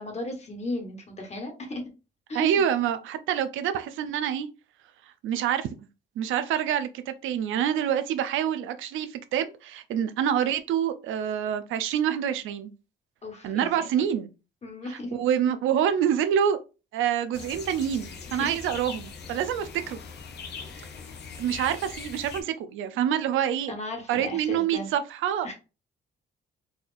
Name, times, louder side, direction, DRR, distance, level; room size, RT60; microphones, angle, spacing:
voice 1, 0.0-1.8 2.3-2.7 13.2-13.9 14.6-15.2 18.3-18.6 23.7-24.9 25.4-25.5, left 2 dB, 35° left, 1.3 m, -36 dB
voice 2, 2.3-4.5 5.2-5.7 6.2-12.7 13.4-14.3 14.9-16.6 16.9-20.0 21.4-23.7 24.1-25.5, right 9 dB, 80° right, 0.5 m, -26 dB
sound 1, 17.3-22.4, left 5 dB, 60° left, 0.7 m, -41 dB
4.1 x 2.3 x 2.5 m
cardioid pair, 90°, 20 cm